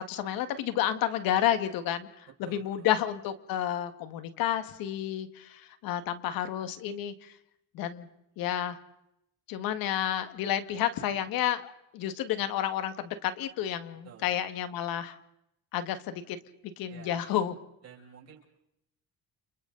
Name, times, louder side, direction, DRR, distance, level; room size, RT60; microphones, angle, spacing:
voice 1, 0.0-2.1 2.4-7.3 7.7-8.1 8.4-8.8 9.5-15.2 15.7-16.4 16.8-17.5, left 11 dB, 85° left, 10 dB, 1.9 m, -30 dB
voice 2, 2.4-2.9 14.0-14.4 16.9-17.2 17.8-18.5, right 7 dB, 45° right, 0 dB, 6.5 m, -51 dB
30.0 x 28.5 x 4.0 m, 0.80 s
cardioid pair, 180°, 34 cm